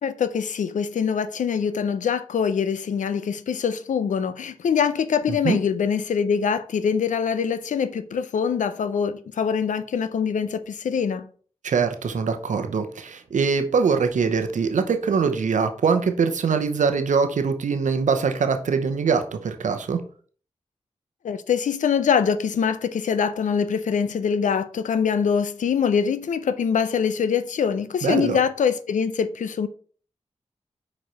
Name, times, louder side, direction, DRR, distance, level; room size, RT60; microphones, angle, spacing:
voice 1, 0.0-11.3 21.2-29.7, left 7 dB, 80° left, 0.5 m, -24 dB
voice 2, 5.3-5.6 11.6-20.0 28.0-28.4, right 5 dB, 80° right, 0.8 m, -23 dB
5.0 x 4.2 x 4.5 m
cardioid pair, 40°, 13 cm